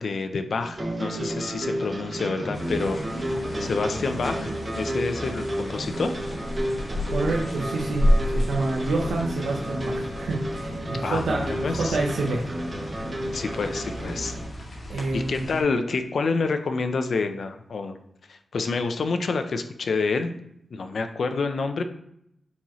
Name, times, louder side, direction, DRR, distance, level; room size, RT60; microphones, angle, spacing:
voice 1, 0.0-3.0 3.3-6.1 11.0-12.0 13.3-14.4 15.1-18.0 18.3-20.3 20.7-21.8, left 4 dB, 65° left, 8 dB, 0.7 m, -28 dB
sound 1, 0.6-14.5, right 1 dB, 25° right, 1.4 m, -31 dB
sound 2, 2.5-15.6, left 1 dB, 45° left, 2.3 m, -31 dB
voice 2, 7.1-12.5 14.9-15.6, right 3 dB, 90° right, -1 dB, 0.9 m, -28 dB
8.5 x 4.3 x 3.1 m, 0.74 s
wide cardioid pair, 125°, 0 cm